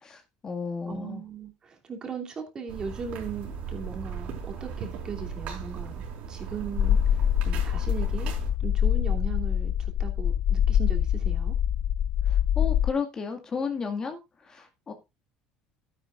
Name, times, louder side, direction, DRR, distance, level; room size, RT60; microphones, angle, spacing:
voice 1, 0.0-1.2 12.3-14.2 14.5-14.9, left 5 dB, 30° left, 2.0 m, -33 dB
voice 2, 0.9-5.9 6.3-8.3 8.6-11.6, right 6 dB, 35° right, 2.8 m, -38 dB
sound 1, 2.7-8.5, right 6 dB, 60° right, 4.4 m, -37 dB
sound 2, 6.8-12.9, left 10 dB, 50° left, 0.5 m, -24 dB
12.0 x 10.0 x 2.5 m
supercardioid pair, 110°, 2 cm